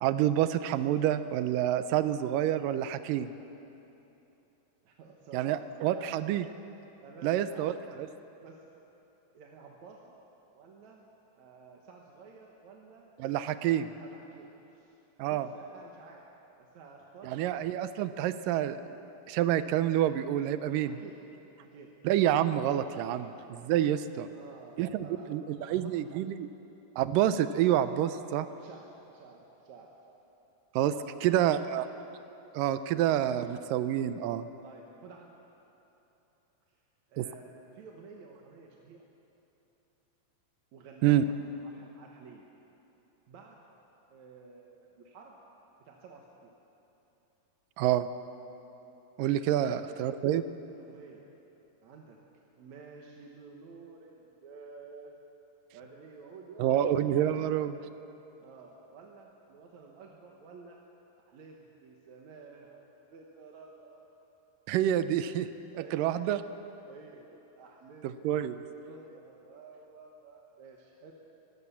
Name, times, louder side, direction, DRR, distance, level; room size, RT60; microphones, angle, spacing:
voice 1, 0.0-3.3 5.3-6.5 7.2-7.7 8.0-8.1 13.2-13.9 15.2-15.5 17.2-18.8 19.3-21.0 22.0-23.3 23.6-24.3 24.8-26.5 27.0-28.5 30.8-30.9 31.2-31.9 32.5-34.5 37.2-37.3 41.0-41.2 47.8-48.1 49.2-50.4 56.6-57.7 64.7-65.5 65.9-66.4 68.0-68.6, right 11 dB, 90° right, 12 dB, 2.4 m, -28 dB
voice 2, 4.8-6.4 7.0-8.0 8.4-8.6 9.3-10.1 10.5-11.0 11.3-13.1 13.6-15.0 15.2-16.2 16.6-17.6 20.8-21.2 21.6-21.9 22.9-23.5 24.3-26.4 28.4-29.9 30.9-31.7 34.6-35.3 36.7-36.8 37.1-39.0 40.7-42.4 43.3-43.6 44.1-45.4 45.9-46.5 49.6-49.9 50.7-51.2 51.8-52.2 52.6-55.2 55.7-56.9 57.3-57.6 58.4-60.8 61.3-64.0 65.7-66.3 66.8-71.1, right 4 dB, 65° right, -1 dB, 2.5 m, -52 dB
22.5 x 16.5 x 7.0 m, 3.0 s
omnidirectional pair, 3.8 m